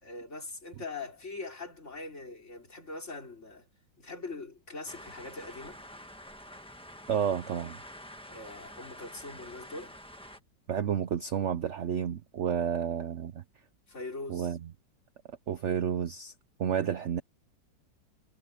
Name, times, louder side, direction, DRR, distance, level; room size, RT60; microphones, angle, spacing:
voice 1, 0.0-3.7 4.0-5.8 8.3-10.0 13.9-14.6, left 3 dB, 40° left, 4.1 m, -42 dB
sound 1, 4.9-10.4, equal, 5° left, 1.1 m, -48 dB
voice 2, 7.1-7.8 10.7-13.4 14.3-14.6 15.5-16.3 16.6-17.2, right 8 dB, 60° right, 0.8 m, -30 dB
omnidirectional pair, 2.0 m